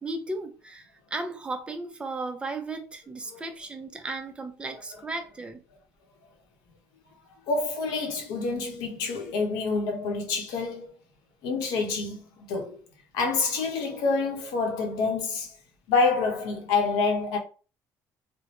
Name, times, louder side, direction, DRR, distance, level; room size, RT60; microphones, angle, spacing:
voice 1, 0.0-5.6, right 2 dB, 15° right, 0.5 m, -35 dB
voice 2, 7.5-10.9 11.4-12.8 13.1-15.6 15.9-17.4, left 4 dB, 90° left, 1.0 m, -27 dB
3.5 x 2.1 x 2.9 m
cardioid pair, 135°, 7 cm